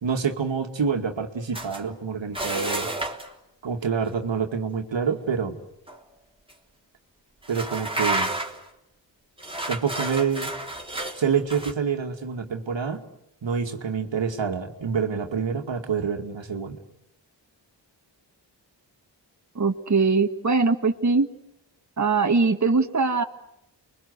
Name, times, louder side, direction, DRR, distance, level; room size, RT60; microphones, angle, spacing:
voice 1, 0.0-2.9 3.6-5.6 7.5-8.3 9.7-10.5 11.2-13.0 13.4-16.8, right 6 dB, 85° right, 5 dB, 2.4 m, -27 dB
sound 1, 1.5-1.8 2.3-3.3 5.9-6.0 6.5-6.6 7.4-8.7 9.4-11.7, right 2 dB, 10° right, 3.4 m, -30 dB
voice 2, 19.6-21.3 22.0-23.2, right 4 dB, 40° right, 5 dB, 1.8 m, -21 dB
30.0 x 23.0 x 8.1 m, 0.80 s
wide cardioid pair, 70°, 44 cm